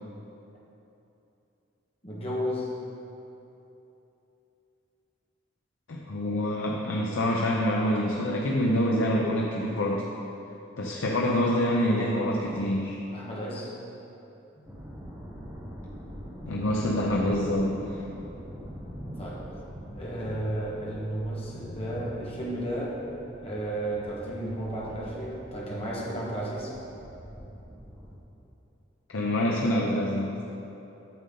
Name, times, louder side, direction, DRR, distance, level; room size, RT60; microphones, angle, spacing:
voice 1, 2.0-2.7 13.1-13.7 14.6-14.8 19.1-19.5 19.9-23.0 23.4-26.7, right 1 dB, 30° left, -5 dB, 1.5 m, -33 dB
voice 2, 5.9-10.1 10.8-13.0 16.5-18.0 29.1-30.4, equal, 85° left, -2 dB, 0.6 m, -26 dB
sound 1, 14.7-28.2, equal, 10° right, 0.9 m, -43 dB
8.8 x 6.6 x 3.8 m, 3.0 s
head